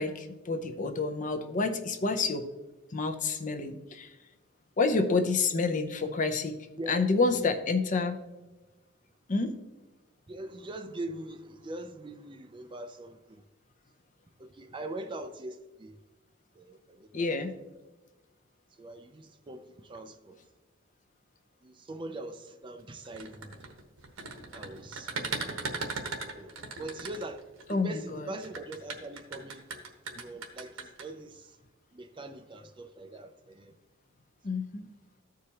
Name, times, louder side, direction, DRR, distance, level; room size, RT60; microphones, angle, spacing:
voice 1, 0.0-2.5 2.9-4.1 4.8-6.6 6.9-8.2 9.3-9.6 17.1-17.5 27.7-28.3 34.4-34.8, left 3 dB, 40° left, 0.6 m, -28 dB
voice 2, 10.3-13.4 14.4-16.0 16.6-17.3 18.8-20.4 21.6-23.6 24.5-25.6 26.3-29.7 30.2-31.6 31.9-33.8, right 2 dB, 25° right, 0.4 m, -42 dB
sound 1, 23.0-27.7 28.4-31.0, right 4 dB, 80° right, 1.1 m, -37 dB
14.5 x 4.8 x 2.9 m
head